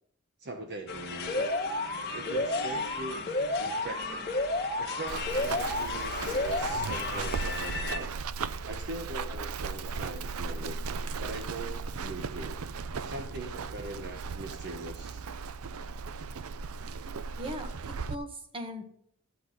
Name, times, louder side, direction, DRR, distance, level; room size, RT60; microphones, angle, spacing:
voice 1, 0.4-1.6 2.1-3.3 3.6-4.2 4.8-8.1 8.6-10.8 11.2-12.6 13.0-15.2, right 2 dB, 50° right, 5 dB, 0.9 m, -41 dB
sound 1, 0.9-8.0, left 5 dB, 50° left, 1.4 m, -38 dB
Alarm, 1.3-7.3, left 1 dB, 25° left, 1.2 m, -32 dB
Run, 5.1-18.2, right 5 dB, 75° right, 0.5 m, -36 dB
voice 2, 17.4-18.9, equal, 25° right, 5 dB, 1.6 m, -39 dB
11.5 x 8.3 x 3.8 m, 0.63 s
head